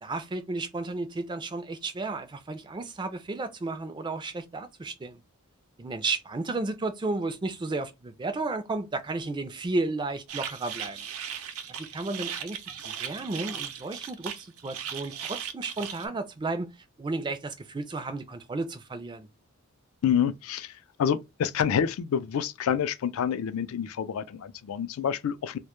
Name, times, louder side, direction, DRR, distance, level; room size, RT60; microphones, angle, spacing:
voice 1, 0.0-5.2 5.8-11.0 11.8-12.6 12.9-16.7 17.0-19.3, right 3 dB, 20° right, 0.3 m, -33 dB
sound 1, 10.3-16.1, right 8 dB, 75° right, 0.5 m, -37 dB
voice 2, 20.0-25.6, left 8 dB, 70° left, 0.3 m, -28 dB
2.1 x 2.1 x 2.9 m
head